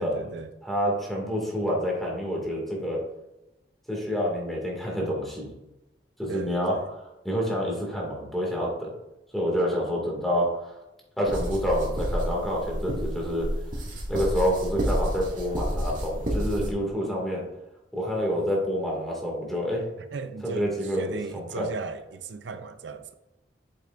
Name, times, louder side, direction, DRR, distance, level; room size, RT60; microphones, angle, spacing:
voice 1, 0.0-0.5 6.3-6.9 17.0-17.5 20.0-23.1, right 4 dB, 85° right, 0.5 m, -37 dB
voice 2, 0.6-3.0 3.9-5.5 6.2-6.7 7.2-8.9 9.3-10.7 11.2-13.5 14.1-17.4 17.9-19.8 20.4-21.7, equal, ahead, 2.1 m, -28 dB
sound 1, 11.2-16.7, equal, 50° right, 2.0 m, -30 dB
8.3 x 6.7 x 2.5 m
head